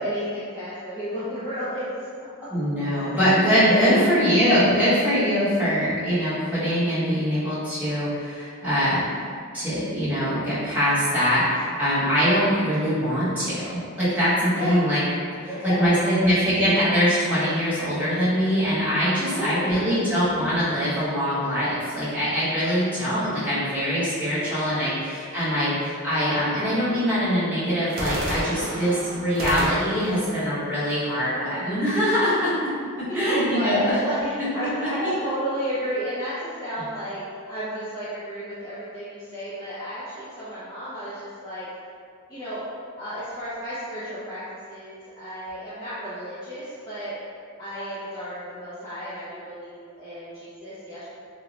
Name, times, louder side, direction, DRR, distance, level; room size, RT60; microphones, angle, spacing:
voice 1, 0.0-1.9 2.2-2.3 3.0-3.2 3.7-4.1 14.5-14.8 15.5-15.8 16.0-16.3 19.3-20.1 24.3-25.0 28.5-29.0 33.0-41.7 42.3-42.6 43.0-47.2 47.6-51.0, equal, 20° left, -12 dB, 0.4 m, -32 dB
voice 2, 2.5-9.3 9.5-15.0 15.4-32.7 33.1-33.8 34.4-35.1, equal, 5° right, -13 dB, 0.8 m, -23 dB
sound 1, 19.7-21.1 27.9-31.8, equal, 45° right, 0.4 m, -34 dB
2.1 x 2.0 x 3.8 m, 2.2 s
head